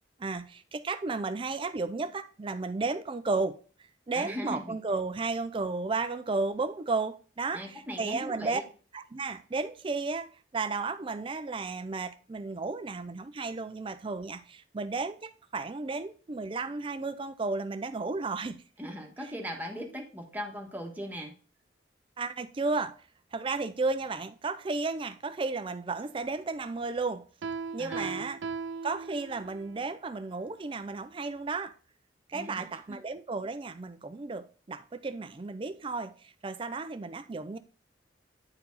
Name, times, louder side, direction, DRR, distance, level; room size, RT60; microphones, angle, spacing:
voice 1, 0.2-3.6 4.1-8.6 8.9-18.6 22.2-23.0 23.3-27.2 27.7-28.4 28.8-31.7 32.3-37.6, right 3 dB, 30° right, 0.4 m, -33 dB
voice 2, 4.1-4.8 7.5-8.6 18.8-21.3 27.8-28.2 32.3-33.0, equal, 10° right, 1.3 m, -39 dB
Piano, 27.4-29.7, right 4 dB, 90° right, 0.5 m, -38 dB
9.7 x 4.6 x 4.0 m
head